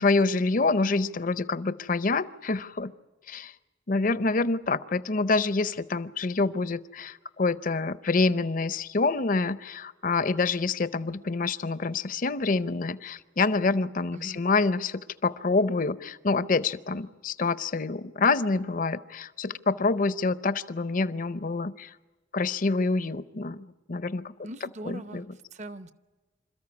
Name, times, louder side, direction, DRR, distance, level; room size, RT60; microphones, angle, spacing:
voice 1, 0.0-2.9 3.3-3.5 3.9-21.9 22.3-24.3 24.8-25.3, left 3 dB, 45° left, 16 dB, 0.6 m, -27 dB
voice 2, 24.4-25.9, right 1 dB, 40° right, 13 dB, 0.8 m, -41 dB
27.0 x 14.0 x 9.6 m, 1.3 s
head